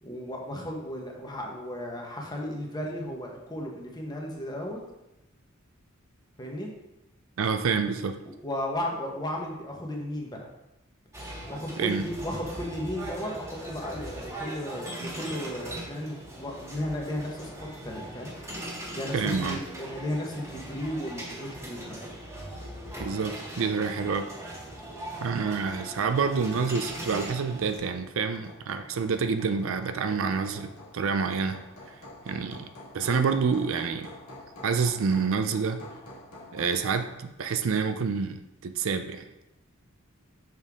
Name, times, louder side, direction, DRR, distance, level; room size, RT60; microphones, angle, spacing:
voice 1, 0.0-4.8 6.4-6.7 8.2-10.5 11.5-18.3 18.9-19.2 19.5-22.1, left 1 dB, 20° left, -1 dB, 1.1 m, -35 dB
voice 2, 7.4-8.2 11.8-12.0 19.1-19.6 23.0-24.3 25.2-31.6 32.3-32.7 32.9-34.1 34.6-35.8 36.5-39.3, right 5 dB, 65° right, 8 dB, 0.5 m, -28 dB
sound 1, 11.1-27.8, right 1 dB, 15° right, 1.6 m, -40 dB
Hammer, 27.7-37.2, left 2 dB, 85° left, 1.7 m, -47 dB
6.6 x 5.3 x 3.6 m, 0.93 s
head